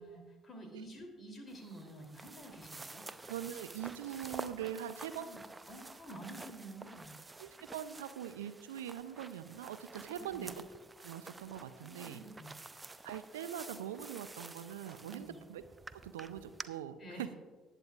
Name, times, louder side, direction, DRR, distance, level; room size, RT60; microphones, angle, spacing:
voice 1, 0.0-3.0 5.2-5.4 5.7-7.2 10.0-10.5 11.8-12.6 15.1-15.4 17.0-17.3, right 1 dB, 35° left, 2 dB, 3.0 m, -50 dB
sound 1, 1.5-16.7, right 2 dB, 20° right, 0.6 m, -50 dB
voice 2, 3.3-5.3 7.4-10.6 11.0-12.2 13.0-15.6 15.9-17.4, right 10 dB, 75° right, 13 dB, 0.4 m, -42 dB
19.0 x 9.0 x 2.4 m, 1.4 s
figure-of-eight pair, 50°, 0 cm